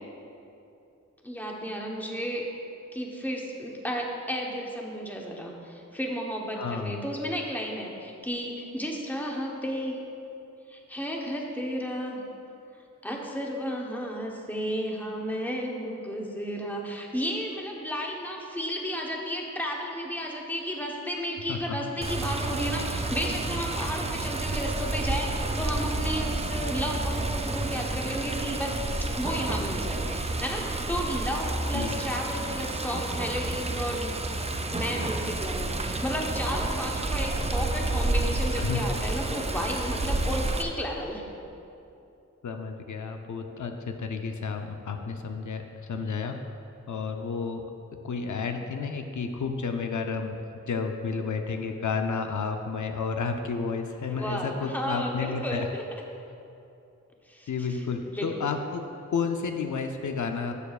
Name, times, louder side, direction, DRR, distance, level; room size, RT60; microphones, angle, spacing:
voice 1, 1.2-2.5 2.9-10.0 10.7-12.2 13.0-34.1 34.7-41.3 54.1-55.8 57.3-57.8 58.1-58.6, equal, 5° left, -1 dB, 1.0 m, -33 dB
voice 2, 6.6-7.1 21.5-21.9 31.7-32.0 38.6-38.8 42.4-46.6 46.9-47.6 48.0-55.7 57.5-58.8 59.1-60.5, left 5 dB, 75° left, 5 dB, 0.6 m, -31 dB
Water, 22.0-40.6, right 2 dB, 20° right, 0.4 m, -30 dB
13.0 x 6.8 x 2.4 m, 2.7 s
wide cardioid pair, 100°, 30 cm